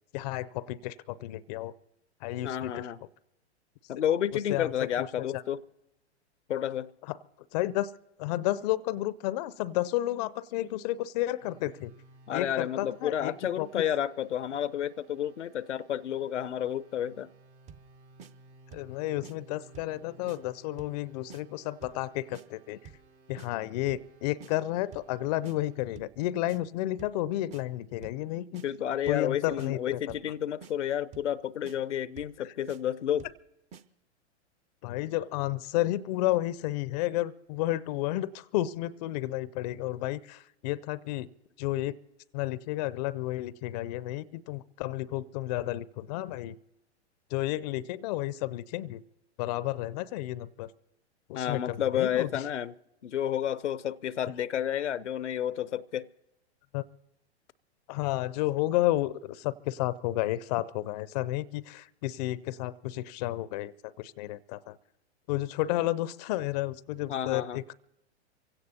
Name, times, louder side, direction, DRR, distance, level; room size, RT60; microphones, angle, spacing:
voice 1, 0.1-1.7 2.2-2.9 4.5-5.4 7.1-7.2 7.5-7.9 8.2-11.9 12.3-13.7 18.7-22.8 23.3-28.6 29.1-30.0 32.4-32.5 34.8-41.3 41.6-41.9 42.3-46.6 47.3-49.0 49.4-50.7 51.3-52.4 56.7-56.8 57.9-64.8 65.3-67.7, left 16 dB, 40° left, 0.4 m, -32 dB
voice 2, 2.4-3.0 3.9-5.6 6.5-6.9 12.3-17.3 28.6-33.3 51.3-52.7 53.0-56.1 67.1-67.6, left 10 dB, 85° left, 0.6 m, -31 dB
sound 1, 11.4-25.8, right 3 dB, 75° right, 3.4 m, -57 dB
sound 2, 17.7-17.9 18.2-18.3 18.7-18.9 19.2-19.4 19.7-20.0 20.3-20.4 20.8-21.0 21.3-21.4 21.8-22.0 22.3-22.5 22.9-23.1 23.4-23.5 23.9-24.1 24.4-24.5 24.9-25.1 25.4-25.6 26.0-26.2 26.5-26.6 27.0-27.2 27.5-27.6 28.0-28.2 28.5-28.7 29.1-29.3 29.6-29.7 30.1-30.3 30.6-30.7 31.1-31.4 31.6-31.8 32.2-32.4 32.7-32.8 33.2-33.4 33.7-33.8, right 7 dB, 20° right, 0.5 m, -48 dB
24.5 x 16.5 x 2.8 m
hypercardioid pair, 110°, 34 cm